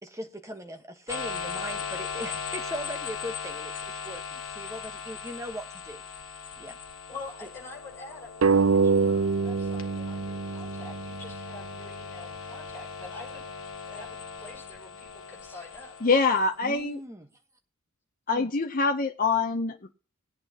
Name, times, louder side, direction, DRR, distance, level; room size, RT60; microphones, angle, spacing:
voice 1, 0.0-6.0 6.6-6.8 16.6-17.3 18.3-18.5, equal, 15° right, 1.3 m, -39 dB
sound 1, 1.1-16.8, left 6 dB, 65° left, 1.3 m, -39 dB
voice 2, 7.1-13.5 13.9-15.9, left 3 dB, 10° left, 6.0 m, -46 dB
sound 2, 8.4-11.6, right 5 dB, 75° right, 0.5 m, -25 dB
voice 3, 16.0-17.0 18.3-19.9, left 4 dB, 40° left, 0.7 m, -25 dB
20.0 x 8.8 x 2.9 m
head